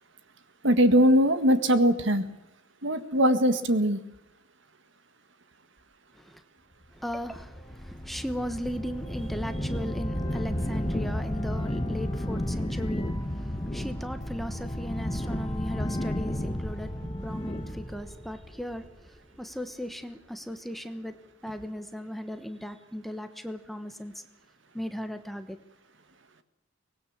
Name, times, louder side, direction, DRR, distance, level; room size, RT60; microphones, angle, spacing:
voice 1, 0.6-2.3 2.8-4.0, equal, 60° right, 1.8 m, -21 dB
voice 2, 6.9-24.2 24.7-25.6, equal, ahead, 1.2 m, -37 dB
sound 1, 7.1-19.2, left 1 dB, 20° left, 1.4 m, -32 dB
24.0 x 19.5 x 7.4 m
head